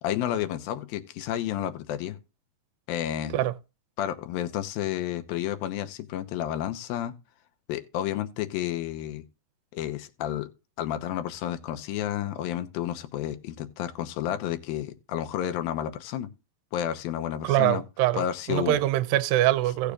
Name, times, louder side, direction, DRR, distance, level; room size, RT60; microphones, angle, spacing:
voice 1, 0.0-2.2 2.9-3.4 4.0-7.1 7.7-9.2 9.7-10.5 10.8-16.3 16.7-17.8 18.1-18.8, left 11 dB, 80° left, 2.7 m, -31 dB
voice 2, 17.4-19.9, right 15 dB, 85° right, 2.4 m, -24 dB
17.0 x 6.8 x 2.3 m
omnidirectional pair, 4.1 m